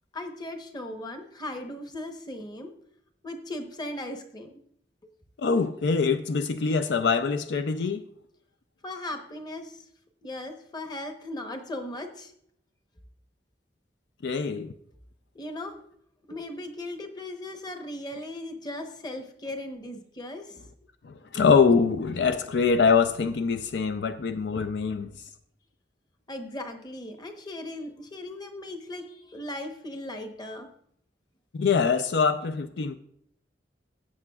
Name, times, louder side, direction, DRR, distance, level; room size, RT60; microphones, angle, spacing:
voice 1, 0.1-2.7 3.2-4.6 8.8-9.8 10.2-12.3 15.3-15.8 16.3-20.5 26.3-30.7, left 1 dB, 25° left, 0.9 m, -37 dB
voice 2, 5.4-8.1 14.2-14.7 21.0-25.1 31.5-32.9, left 5 dB, 70° left, 0.4 m, -24 dB
15.5 x 7.6 x 2.3 m
head